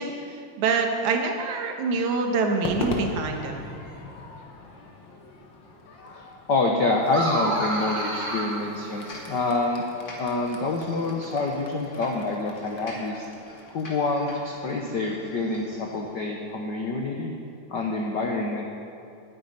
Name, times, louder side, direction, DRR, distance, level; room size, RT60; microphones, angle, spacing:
voice 1, 0.0-3.7, right 4 dB, 85° right, 3 dB, 2.5 m, -26 dB
Crowd / Fireworks, 2.6-17.0, left 3 dB, 55° left, 1.4 m, -40 dB
voice 2, 6.1-9.8 10.2-13.3 13.7-17.4 17.7-18.6, left 3 dB, 80° left, 1 dB, 0.9 m, -27 dB
sound 1, 7.1-9.6, right 1 dB, 5° right, 2.9 m, -29 dB
sound 2, 9.0-16.1, left 1 dB, 30° left, 2.7 m, -46 dB
9.4 x 8.7 x 9.5 m, 2.5 s
omnidirectional pair, 3.3 m